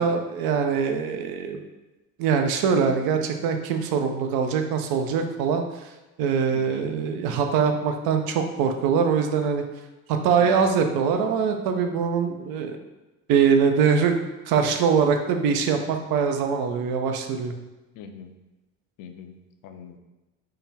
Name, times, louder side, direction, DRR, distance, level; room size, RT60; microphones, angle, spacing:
voice 1, 0.0-1.6 2.2-5.6 6.2-9.6 10.1-12.8 13.3-14.2 14.5-17.5, right 6 dB, 75° right, 5 dB, 0.6 m, -23 dB
voice 2, 6.5-6.9 10.4-10.8 17.9-18.3 19.0-20.0, left 5 dB, 65° left, 6 dB, 0.6 m, -41 dB
3.8 x 2.2 x 4.0 m, 1.1 s
supercardioid pair, 70°, 36 cm